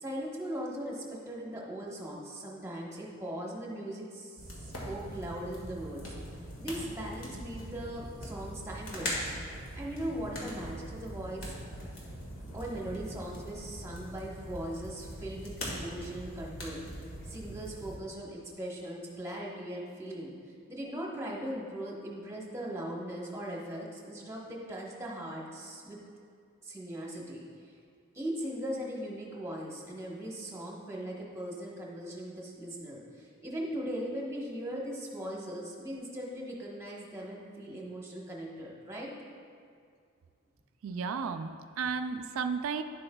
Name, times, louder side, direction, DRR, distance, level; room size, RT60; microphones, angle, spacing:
voice 1, 0.0-6.1 6.6-9.2 9.7-11.5 12.5-20.3 20.7-26.0 26.6-27.4 28.1-39.1, right 1 dB, 10° right, -3 dB, 1.0 m, -39 dB
sound 1, 4.4-18.0, equal, 75° left, 1.7 m, -41 dB
voice 2, 40.8-42.8, right 5 dB, 75° right, 8 dB, 0.3 m, -33 dB
10.5 x 7.8 x 2.3 m, 2.2 s
head